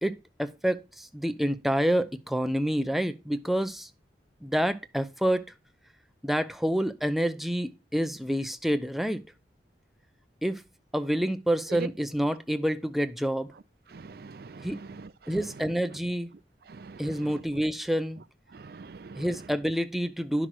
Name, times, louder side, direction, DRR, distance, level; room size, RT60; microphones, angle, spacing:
voice 1, 0.0-3.9 4.4-5.4 6.2-9.2 10.4-10.6 10.9-13.5 14.6-14.8 15.3-16.3 17.0-18.2 19.2-20.5, equal, ahead, 0.6 m, -28 dB
voice 2, 13.9-15.1 16.7-17.2 18.5-19.2, right 4 dB, 60° right, 0.5 m, -43 dB
10.5 x 6.0 x 4.6 m
head